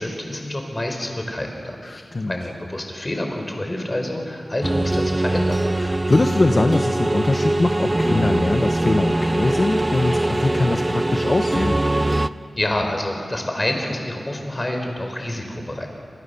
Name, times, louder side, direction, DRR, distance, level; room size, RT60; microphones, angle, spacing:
voice 1, 0.0-1.8 2.3-5.6 12.6-15.9, left 1 dB, 25° left, 3 dB, 4.8 m, -27 dB
voice 2, 1.8-2.4 5.7-11.8, left 2 dB, 40° left, 6 dB, 1.2 m, -22 dB
sound 1, 4.6-12.3, right 1 dB, 20° right, 0.7 m, -22 dB
27.5 x 27.5 x 7.1 m, 2.4 s
wide cardioid pair, 105°, 0 cm